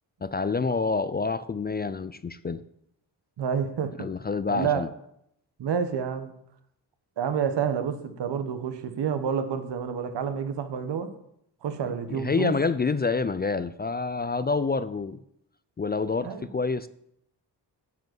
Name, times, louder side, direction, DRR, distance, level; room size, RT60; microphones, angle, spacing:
voice 1, 0.2-2.6 4.0-4.9 12.1-15.2 15.8-16.9, left 4 dB, 25° left, 0.4 m, -27 dB
voice 2, 3.4-4.1 4.5-4.8 5.6-6.3 7.2-11.1 11.6-12.6 16.2-16.5, right 7 dB, 75° right, 1.2 m, -29 dB
9.3 x 5.1 x 7.9 m
cardioid pair, 75°, 42 cm